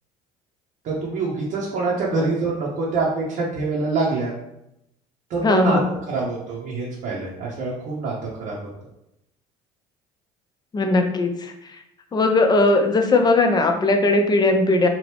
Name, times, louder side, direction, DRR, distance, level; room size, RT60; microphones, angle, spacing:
voice 1, 0.8-4.3 5.3-5.8 6.1-8.7, right 3 dB, 60° right, -4 dB, 0.8 m, -25 dB
voice 2, 5.4-5.8 10.7-11.3 12.1-14.9, left 2 dB, 25° left, 4 dB, 0.5 m, -18 dB
2.9 x 2.4 x 3.3 m, 0.83 s
supercardioid pair, 90°, 16 cm